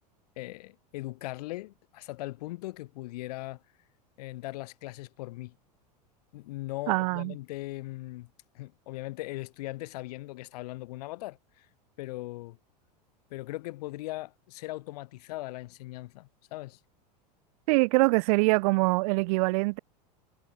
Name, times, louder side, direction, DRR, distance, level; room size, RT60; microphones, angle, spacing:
voice 1, 0.4-3.6 4.2-5.5 6.3-8.3 8.5-11.7 12.0-12.6 13.3-16.8, left 19 dB, 70° left, 5.0 m, -39 dB
voice 2, 6.9-7.3 17.7-19.8, right 26 dB, 60° right, 0.6 m, -24 dB
hypercardioid pair, 95°, 21 cm